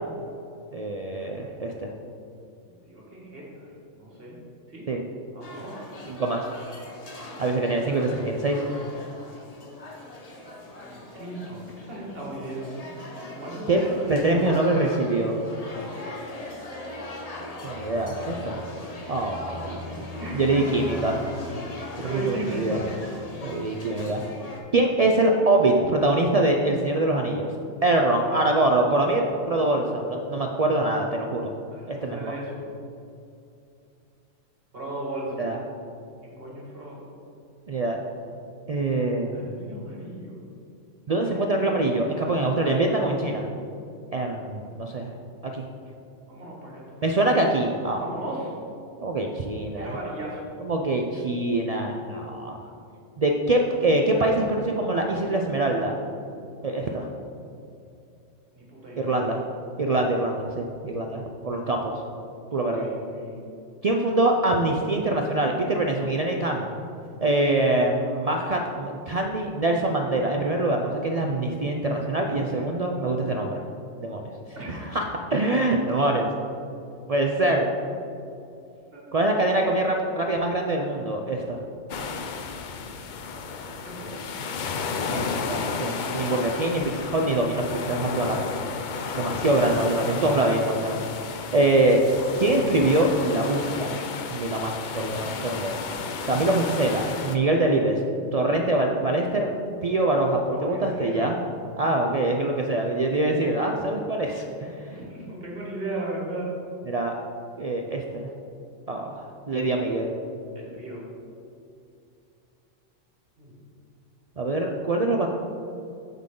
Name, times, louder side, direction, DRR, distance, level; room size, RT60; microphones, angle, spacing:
voice 1, 0.7-1.9 4.9-5.0 6.1-6.5 7.4-8.6 13.7-13.8 14.1-15.4 17.6-18.6 19.1-20.1 20.3-21.2 22.0-22.8 23.4-24.2 24.7-27.5 27.8-31.5 31.9-32.3 35.4-35.6 37.7-38.0 38.7-39.5 41.1-43.4 44.1-45.1 45.4-45.6 47.0-48.0 49.0-50.0 50.6-52.6 53.2-56.0 56.6-57.1 59.0-59.4 59.8-61.9 62.5-62.9 63.8-66.7 67.2-73.6 74.0-74.2 74.7-75.0 75.3-76.3 77.1-77.7 79.1-81.6 85.1-88.4 89.1-91.0 91.5-92.0 92.4-94.0 94.3-95.8 96.3-98.0 98.3-99.5 99.8-101.4 101.8-104.9 106.9-107.1 107.6-108.3 108.9-110.2 114.4-115.3, right 2 dB, 75° right, 1 dB, 0.3 m, -24 dB
voice 2, 2.8-4.4 4.7-4.8 5.3-5.8 10.8-13.9 14.2-15.1 20.2-20.4 22.0-22.8 27.9-28.4 31.7-32.7 34.7-35.6 36.2-37.1 39.3-40.4 41.2-41.4 42.1-42.5 46.3-47.2 48.0-48.5 49.8-50.5 58.5-59.4 62.5-63.4 72.3-72.6 74.6-74.7 78.9-79.1 83.6-85.3 100.5-101.3 104.9-106.5 109.7-109.9 110.5-111.0 113.4-113.5, right 1 dB, 50° right, -4 dB, 1.9 m, -36 dB
sound 1, 5.4-24.6, left 2 dB, 35° left, 0.9 m, -39 dB
sound 2, 81.9-97.4, left 5 dB, 60° left, 0.5 m, -32 dB
7.4 x 7.2 x 3.7 m, 2.6 s
omnidirectional pair, 1.3 m